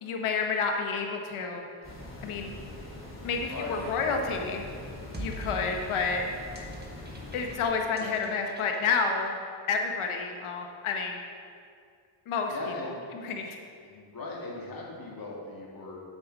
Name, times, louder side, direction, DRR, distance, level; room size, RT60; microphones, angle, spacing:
voice 1, 0.0-1.6 2.2-2.5 3.2-4.6 5.2-6.3 7.3-9.3 9.7-11.2 12.3-12.5 12.8-12.9 13.2-13.6, left 5 dB, 90° left, 3 dB, 1.1 m, -29 dB
sound 1, 1.8-7.6, left 1 dB, 25° left, 2.3 m, -43 dB
voice 2, 3.5-4.2 8.0-8.2 12.5-13.1 13.8-16.0, left 2 dB, 45° left, -2 dB, 2.2 m, -39 dB
sound 2, 3.5-9.3, right 2 dB, 20° right, 1.3 m, -45 dB
8.0 x 7.2 x 5.4 m, 2.3 s
cardioid pair, 100°, 48 cm